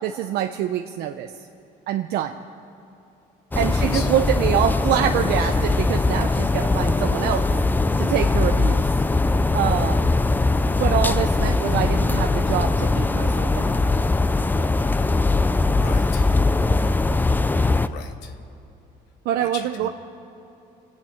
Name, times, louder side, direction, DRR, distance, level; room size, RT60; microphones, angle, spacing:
voice 1, 0.0-1.3 1.9-2.4 3.6-7.5 8.0-8.9 9.1-9.2 9.5-10.1 10.8-13.8 19.2-19.9, right 10 dB, 75° right, 5 dB, 0.6 m, -25 dB
sound 1, 3.5-17.9, left 3 dB, 10° left, 0.4 m, -21 dB
voice 2, 3.6-4.1 15.6-16.4 17.8-18.4 19.4-19.9, left 7 dB, 90° left, 6 dB, 1.2 m, -38 dB
26.5 x 9.0 x 5.9 m, 2.8 s
cardioid pair, 110°, 17 cm